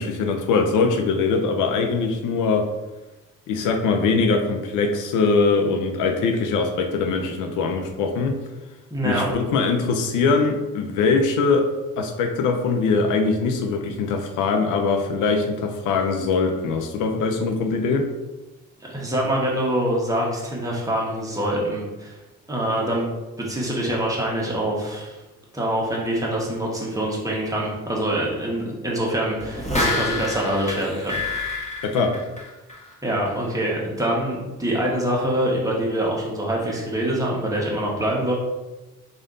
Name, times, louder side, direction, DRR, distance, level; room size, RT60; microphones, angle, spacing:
voice 1, 0.0-2.7 3.5-8.4 9.0-11.7 12.0-18.1 31.8-32.2, left 4 dB, 85° left, 4 dB, 0.6 m, -22 dB
voice 2, 8.9-9.3 18.9-22.2 22.5-23.1 23.4-25.1 25.5-31.2 33.0-38.3, right 1 dB, 10° right, -3 dB, 1.2 m, -25 dB
sound 1, 29.4-32.9 33.3-33.4, left 2 dB, 25° left, 1.2 m, -27 dB
3.5 x 2.6 x 3.7 m, 1.1 s
cardioid pair, 90°, 30 cm